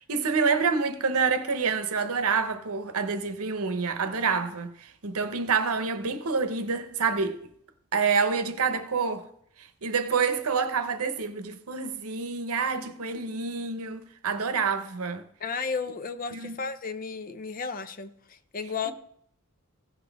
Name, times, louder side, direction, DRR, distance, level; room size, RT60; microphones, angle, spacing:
voice 1, 0.0-7.4 7.9-9.3 9.8-15.2 16.3-16.6, right 5 dB, 80° right, 0.9 m, -27 dB
voice 2, 15.4-18.9, left 5 dB, 40° left, 0.6 m, -33 dB
16.0 x 6.0 x 3.5 m
head